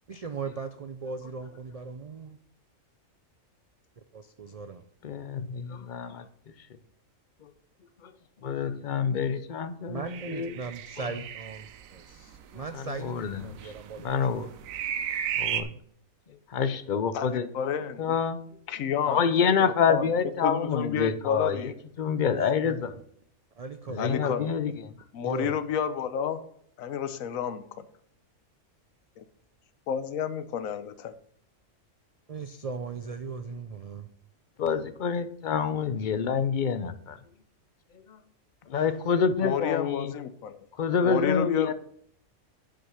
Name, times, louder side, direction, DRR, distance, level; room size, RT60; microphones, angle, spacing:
voice 1, 0.1-2.4 4.1-4.8 9.9-14.5 22.3-22.9 23.6-24.4 25.2-25.6 32.3-34.1, right 4 dB, 60° right, 9 dB, 0.3 m, -38 dB
voice 2, 5.0-6.3 7.4-7.5 8.0-8.1 8.4-10.6 12.7-13.6 14.0-14.5 15.4-15.7 16.5-17.7 18.0-18.4 19.1-21.7 22.0-22.9 23.9-24.7 34.6-37.2 38.1-38.2 38.7-40.1 40.8-41.7, left 6 dB, 50° left, 12 dB, 0.6 m, -27 dB
sound 1, 10.1-15.6, right 9 dB, 85° right, 1.1 m, -34 dB
voice 3, 17.1-18.2 18.7-19.2 19.6-20.1 20.4-21.7 24.0-24.5 25.1-26.5 26.8-27.9 29.2-29.3 29.9-31.1 38.7-38.8 39.4-40.6 41.0-41.7, left 8 dB, 85° left, 13 dB, 1.1 m, -31 dB
7.8 x 6.6 x 5.7 m, 0.64 s
omnidirectional pair, 1.4 m